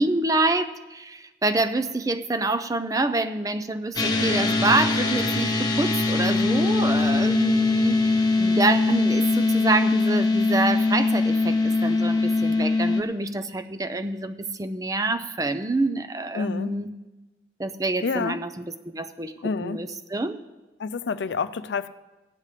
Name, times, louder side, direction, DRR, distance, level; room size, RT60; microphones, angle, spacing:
voice 1, 0.0-16.9 17.6-18.6 18.9-19.3 19.6-20.4, right 2 dB, 20° right, 10 dB, 0.5 m, -27 dB
sound 1, 3.9-13.0, left 3 dB, 25° left, 1.1 m, -22 dB
voice 2, 16.3-16.7 18.0-18.4 19.4-19.8 20.8-21.9, left 5 dB, 85° left, 13 dB, 0.5 m, -28 dB
17.0 x 9.8 x 3.3 m, 1.1 s
head